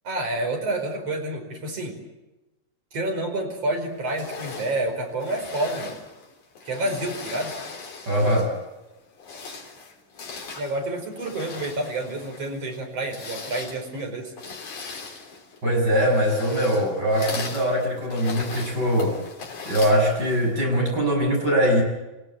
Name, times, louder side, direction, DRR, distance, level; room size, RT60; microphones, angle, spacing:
voice 1, 0.0-2.0 2.9-6.0 6.7-7.6 10.6-14.3, right 2 dB, 45° right, 2 dB, 6.0 m, -29 dB
sound 1, 4.0-8.6 9.1-20.6, left 4 dB, 65° left, 4.9 m, -39 dB
voice 2, 8.1-8.5 15.6-19.2 19.6-21.8, equal, 30° right, 0 dB, 7.6 m, -22 dB
29.0 x 17.5 x 7.8 m, 1.1 s
omnidirectional pair, 3.8 m